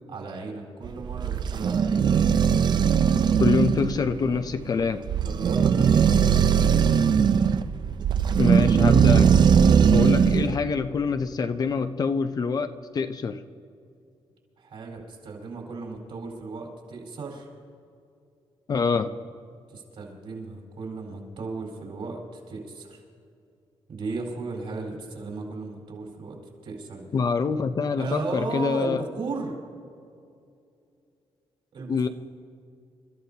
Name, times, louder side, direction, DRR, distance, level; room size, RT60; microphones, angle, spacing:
voice 1, 0.1-2.1 5.2-6.5 14.6-17.5 19.7-22.2 22.5-23.0 23.9-26.4 26.6-27.2 28.0-29.5 31.7-32.1, right 3 dB, 65° right, -1 dB, 4.4 m, -35 dB
sound 1, 0.8-10.6, right 7 dB, 45° right, 0.5 m, -20 dB
voice 2, 3.4-5.0 8.4-9.4 9.9-13.4 18.7-19.1 27.1-29.0 31.9-32.1, left 5 dB, 40° left, 9 dB, 0.6 m, -25 dB
29.0 x 14.5 x 2.8 m, 2.5 s
wide cardioid pair, 175°, 10 cm